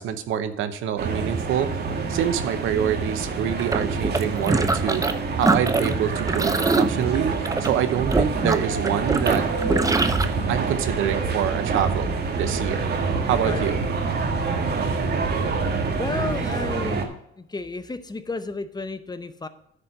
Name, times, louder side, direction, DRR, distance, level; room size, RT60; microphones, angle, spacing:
voice 1, 0.0-1.7 2.1-5.0 5.4-7.3 7.6-9.4 10.5-12.1 12.4-12.9 13.2-13.8, right 9 dB, 85° right, 11 dB, 0.8 m, -25 dB
sound 1, 1.0-17.1, right 4 dB, 55° right, 1.5 m, -27 dB
sound 2, 3.6-5.1 5.4-10.2, right 3 dB, 15° right, 0.7 m, -23 dB
voice 2, 15.9-17.1 17.4-19.5, left 3 dB, 20° left, 11 dB, 0.7 m, -32 dB
9.8 x 4.4 x 6.5 m, 0.74 s
cardioid pair, 90°, 20 cm